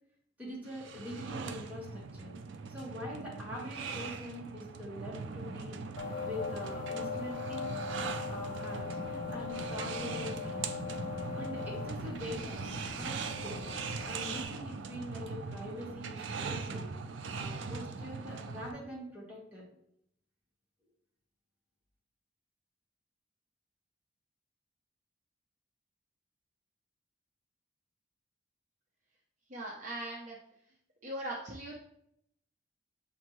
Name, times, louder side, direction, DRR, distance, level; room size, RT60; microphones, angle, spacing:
voice 1, 0.4-2.4 2.7-5.8 6.2-7.8 8.2-10.7 11.4-13.6 14.0-16.9 17.3-19.7, left 1 dB, 10° right, -6 dB, 1.4 m, -44 dB
sound 1, 0.7-18.7, right 4 dB, 85° right, 0.4 m, -40 dB
sound 2, 6.0-14.4, left 5 dB, 50° left, 0.5 m, -40 dB
voice 2, 29.5-30.4 31.0-31.8, right 1 dB, 45° right, -3 dB, 0.6 m, -39 dB
6.4 x 2.6 x 3.0 m, 0.73 s
head